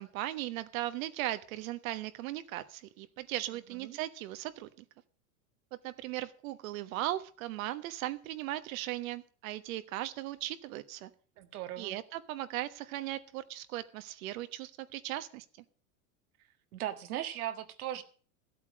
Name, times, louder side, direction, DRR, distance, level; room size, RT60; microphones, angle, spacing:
voice 1, 0.0-4.7 5.8-11.1 11.8-15.4, right 15 dB, 70° right, 1.3 m, -38 dB
voice 2, 11.4-12.0 16.7-18.0, right 12 dB, 85° right, 1.7 m, -38 dB
14.0 x 8.4 x 6.2 m
supercardioid pair, 125°, 43 cm